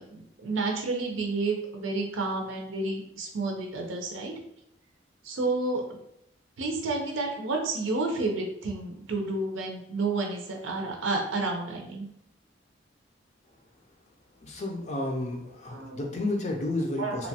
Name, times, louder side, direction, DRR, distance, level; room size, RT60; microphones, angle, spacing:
voice 1, 0.0-4.3 5.2-6.0 6.6-12.1 15.7-16.2 17.0-17.3, right 3 dB, 90° right, 2 dB, 0.5 m, -30 dB
voice 2, 14.4-17.3, left 2 dB, 35° left, 1 dB, 0.4 m, -31 dB
2.9 x 2.2 x 2.7 m, 0.75 s
head